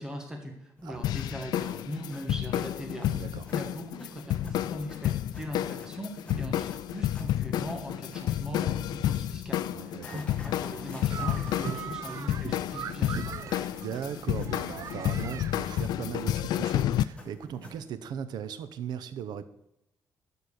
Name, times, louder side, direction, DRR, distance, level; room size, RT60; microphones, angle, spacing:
voice 1, 0.0-13.4, equal, 10° right, 2 dB, 1.3 m, -40 dB
sound 1, 0.8-17.8, left 3 dB, 15° left, 1.4 m, -49 dB
sound 2, 1.0-17.0, left 12 dB, 85° left, 0.4 m, -31 dB
voice 2, 3.1-3.4 6.3-6.5 9.7-10.3 13.6-19.5, right 8 dB, 85° right, 13 dB, 0.8 m, -38 dB
sound 3, 11.1-16.3, right 9 dB, 50° right, 0.4 m, -40 dB
12.5 x 4.4 x 6.7 m, 0.82 s
cardioid pair, 175°, 7 cm